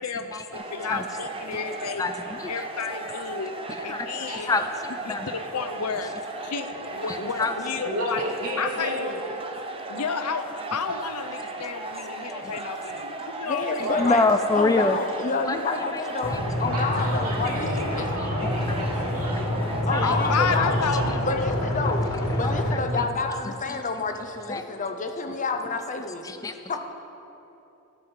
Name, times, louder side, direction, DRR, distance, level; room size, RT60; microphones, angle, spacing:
voice 1, 0.0-2.1 2.5-3.5 3.8-4.5 5.0-6.1 6.4-8.2 8.6-8.9 9.9-13.9 20.0-21.5, left 5 dB, 85° left, 9 dB, 0.7 m, -31 dB
sound 1, 0.5-19.8, right 2 dB, 25° right, 0.7 m, -36 dB
voice 2, 2.0-2.5 3.8-4.1 4.4-4.7 5.1-5.3 7.1-7.5 12.4-12.5 14.0-15.0 15.4-15.6 15.9-16.0 16.3-16.4 18.4-18.8 19.9-20.1 22.4-22.6 23.7-23.8 24.5-24.6 26.2-26.8, left 3 dB, 15° left, 8 dB, 0.3 m, -26 dB
voice 3, 7.8-9.2 13.8-14.1 16.7-19.5 19.9-21.1, right 1 dB, 75° right, -3 dB, 2.4 m, -33 dB
voice 4, 13.4-14.2 14.5-16.3 16.6-18.3 19.9-20.8 21.3-22.1 22.4-26.3 26.7-26.8, left 3 dB, 35° left, 6 dB, 0.7 m, -29 dB
sound 2, 16.2-22.7, left 1 dB, 65° left, 1.6 m, -27 dB
12.5 x 7.7 x 5.4 m, 3.0 s
head